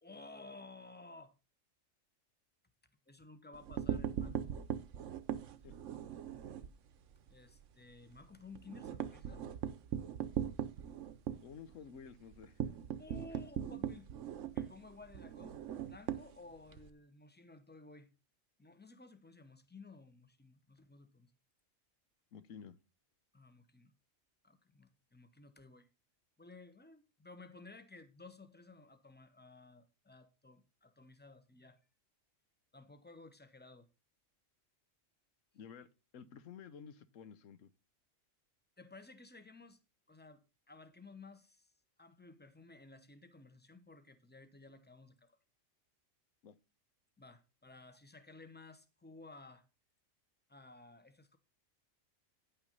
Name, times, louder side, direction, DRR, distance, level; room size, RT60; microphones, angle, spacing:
voice 1, 0.0-1.3 3.1-4.5 5.4-5.7 7.3-9.5 13.0-14.1 14.5-15.6 15.8-18.1 18.6-21.3 23.3-23.9 24.4-25.9 26.4-31.8 32.7-33.9 38.8-39.8 40.1-40.4 40.7-41.7 42.0-45.4 47.2-49.6 50.5-51.4, left 3 dB, 10° left, 0.8 m, -55 dB
sound 1, 3.5-6.7 7.1-7.3 7.6-7.7 8.0-16.9, right 9 dB, 70° right, 1.1 m, -40 dB
voice 2, 11.4-12.6 13.3-13.4 22.3-22.8 35.5-35.9 36.1-37.7 46.4-46.6, left 7 dB, 80° left, 1.2 m, -52 dB
10.0 x 5.7 x 5.3 m
omnidirectional pair, 1.3 m